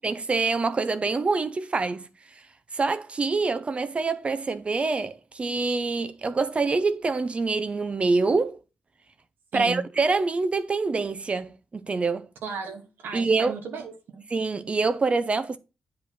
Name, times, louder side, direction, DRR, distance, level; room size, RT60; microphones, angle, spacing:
voice 1, 0.0-2.1 2.7-8.6 9.5-12.3 13.1-13.5 14.3-15.6, right 3 dB, 35° right, 0.5 m, -25 dB
voice 2, 9.5-9.8 12.4-14.2, right 5 dB, 85° right, 1.2 m, -35 dB
8.1 x 3.2 x 5.6 m
cardioid pair, 85°, 3 cm